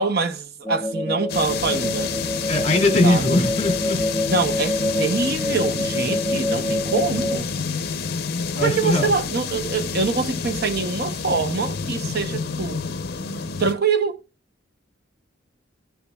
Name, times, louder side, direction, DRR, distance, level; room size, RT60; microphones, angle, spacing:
voice 1, 0.0-2.1 3.0-3.5 4.3-7.5 8.6-12.8 13.6-14.2, right 4 dB, 55° right, 0.8 m, -24 dB
sound 1, 0.6-7.4, left 1 dB, ahead, 0.7 m, -26 dB
sound 2, 1.3-13.7, left 5 dB, 55° left, 0.7 m, -29 dB
voice 2, 2.5-4.0 8.6-9.1, left 2 dB, 35° left, 2.7 m, -20 dB
17.5 x 7.0 x 2.3 m
head